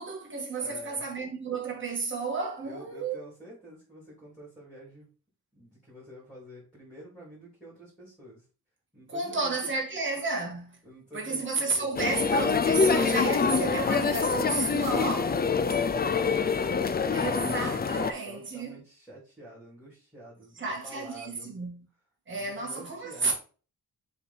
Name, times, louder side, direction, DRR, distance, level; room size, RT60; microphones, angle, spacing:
voice 1, 0.0-3.2 9.1-10.8 11.1-15.4 17.1-18.8 20.6-21.8 22.3-23.3, right 3 dB, 30° right, 1.7 m, -32 dB
voice 2, 0.6-1.1 2.6-5.1 5.5-8.4 8.9-9.7 10.8-12.0 15.5-16.5 18.2-21.6 22.3-23.3, right 1 dB, ahead, 3.2 m, -48 dB
sound 1, 12.0-18.1, left 5 dB, 25° left, 0.4 m, -25 dB
6.9 x 3.5 x 4.3 m
wide cardioid pair, 155°, 38 cm